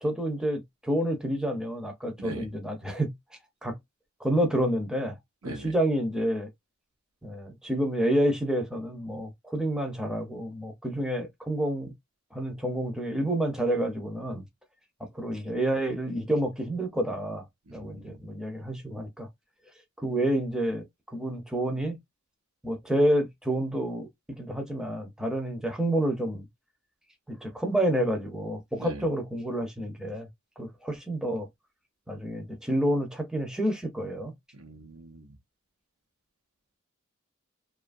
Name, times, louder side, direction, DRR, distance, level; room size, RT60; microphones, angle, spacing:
voice 1, 0.0-3.1 3.6-3.7 4.2-5.1 5.4-6.5 7.2-11.9 12.3-14.4 15.1-17.4 17.7-19.3 20.0-22.0 22.6-26.5 27.3-30.3 30.6-31.5 32.1-34.3, right 1 dB, 5° right, 0.5 m, -29 dB
voice 2, 5.4-5.7 17.7-18.2 28.8-29.0 34.5-35.4, right 2 dB, 85° right, 0.8 m, -41 dB
2.7 x 2.4 x 2.4 m
head